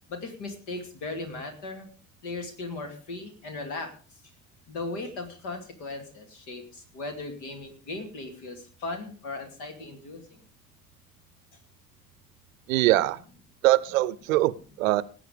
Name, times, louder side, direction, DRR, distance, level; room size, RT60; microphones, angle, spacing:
voice 1, 0.1-1.9 2.2-3.9 4.7-10.2, left 2 dB, 65° left, 6 dB, 2.6 m, -37 dB
voice 2, 12.7-13.2 13.6-15.0, right 17 dB, 70° right, 20 dB, 0.6 m, -22 dB
18.5 x 7.8 x 5.1 m, 0.40 s
figure-of-eight pair, 45°, 42 cm